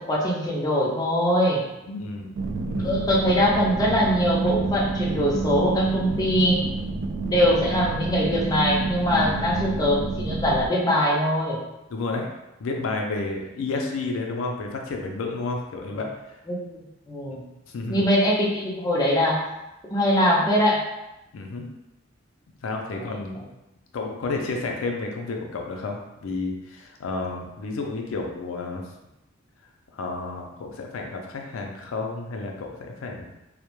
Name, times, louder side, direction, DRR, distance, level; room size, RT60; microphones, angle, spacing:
voice 1, 0.0-1.6 2.8-6.6 7.3-11.6 16.5-16.8 17.1-17.4 17.9-19.4 19.9-20.8 23.0-23.2, equal, 20° left, -4 dB, 0.4 m, -22 dB
voice 2, 1.9-2.3 2.7-2.9 9.1-9.7 11.9-12.3 12.6-16.4 17.7-18.1 21.3-21.7 22.6-23.4 23.9-28.8 29.9-33.3, left 3 dB, 85° left, 1 dB, 0.4 m, -31 dB
sound 1, 2.3-10.7, right 3 dB, 65° right, 0.3 m, -28 dB
2.2 x 2.0 x 2.9 m, 0.93 s
head